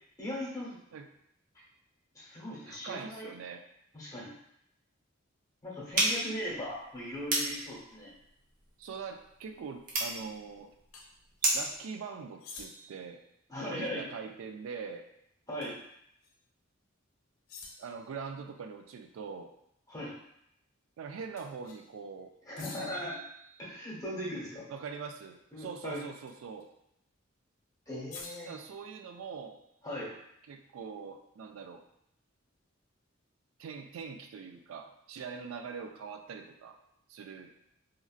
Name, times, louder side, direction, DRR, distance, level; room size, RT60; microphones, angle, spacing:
voice 1, 0.2-0.8 2.1-3.3 3.9-4.3 5.6-8.1 13.5-14.0 15.5-15.8 19.9-20.1 22.4-23.2 23.6-24.7 25.5-26.0 27.9-28.5 29.8-30.1, equal, 15° left, -7 dB, 1.0 m, -39 dB
voice 2, 2.7-3.6 8.8-10.7 11.5-13.2 13.7-15.1 17.8-19.5 21.0-22.3 24.7-26.7 28.4-29.6 30.5-31.8 33.6-36.8 37.1-37.5, right 5 dB, 90° right, 6 dB, 0.3 m, -43 dB
sound 1, 5.9-11.8, right 1 dB, 45° right, 0.7 m, -34 dB
sound 2, 10.9-11.1 12.4-13.1 15.6-15.9 16.2-16.3 17.5-18.1 21.4-21.9 22.6-23.9 26.3-26.6 28.1-29.5, left 2 dB, 75° left, 0.6 m, -49 dB
3.0 x 2.5 x 2.4 m, 0.77 s
head